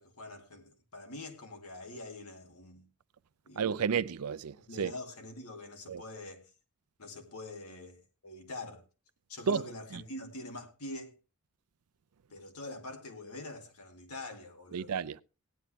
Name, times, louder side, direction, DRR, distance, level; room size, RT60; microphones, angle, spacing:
voice 1, 0.0-2.9 3.5-4.0 4.7-6.5 7.0-8.8 9.3-11.1 12.3-14.9, left 2 dB, 90° left, 2.3 m, -45 dB
voice 2, 3.6-4.9 5.9-6.0 9.5-9.6 14.7-15.2, right 6 dB, 90° right, 0.5 m, -31 dB
17.0 x 10.0 x 3.2 m
head